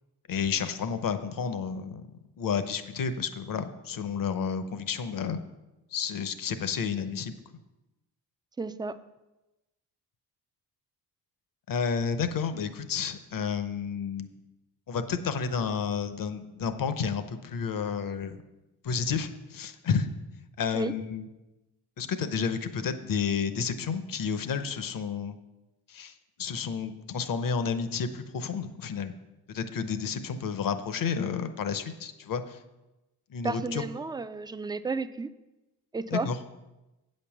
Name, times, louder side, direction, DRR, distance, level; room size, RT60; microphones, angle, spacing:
voice 1, 0.3-2.1 2.4-5.4 5.9-7.4 11.7-14.3 14.9-18.4 18.8-20.1 20.6-21.3 22.0-25.4 25.9-29.1 29.5-32.6 33.3-33.8 36.1-36.4, left 6 dB, 55° left, 11 dB, 0.8 m, -31 dB
voice 2, 8.6-9.0 20.7-20.9 33.4-35.3 35.9-36.3, right 4 dB, 10° right, 12 dB, 0.3 m, -32 dB
8.2 x 5.3 x 7.2 m, 1.0 s
cardioid pair, 95°, 40 cm